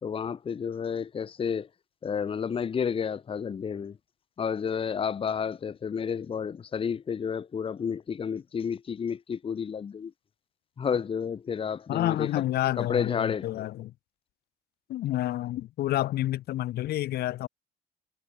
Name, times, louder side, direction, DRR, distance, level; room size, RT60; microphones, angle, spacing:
voice 1, 0.0-1.7 2.0-4.0 4.4-10.1 10.8-12.3 12.7-13.7, left 7 dB, 30° left, 1.1 m, -31 dB
voice 2, 11.9-13.9 14.9-17.5, left 14 dB, 70° left, 1.2 m, -29 dB
cardioid pair, 110°, 17 cm